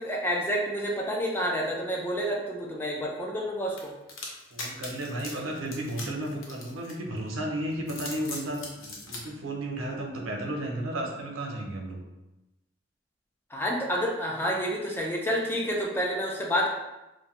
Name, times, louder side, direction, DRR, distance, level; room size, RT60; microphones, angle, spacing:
voice 1, 0.0-3.9 13.5-16.7, equal, 10° left, -2 dB, 0.4 m, -29 dB
sound 1, 3.8-7.2 7.7-9.2, left 3 dB, 90° left, 0.6 m, -40 dB
voice 2, 4.5-12.0, right 1 dB, 90° right, 0 dB, 0.6 m, -33 dB
2.6 x 2.1 x 2.9 m, 0.99 s
head